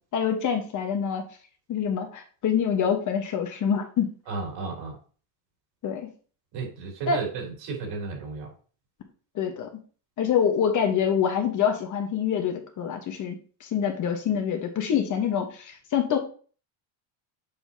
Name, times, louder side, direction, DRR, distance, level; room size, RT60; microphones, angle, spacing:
voice 1, 0.1-1.2 1.7-4.1 5.8-6.1 7.1-7.2 9.3-9.7 10.2-16.2, left 7 dB, 40° left, 5 dB, 1.2 m, -26 dB
voice 2, 4.3-4.9 6.5-8.5, right 4 dB, 70° right, 0 dB, 3.3 m, -33 dB
7.0 x 5.6 x 2.8 m, 0.40 s
cardioid pair, 145°, 46 cm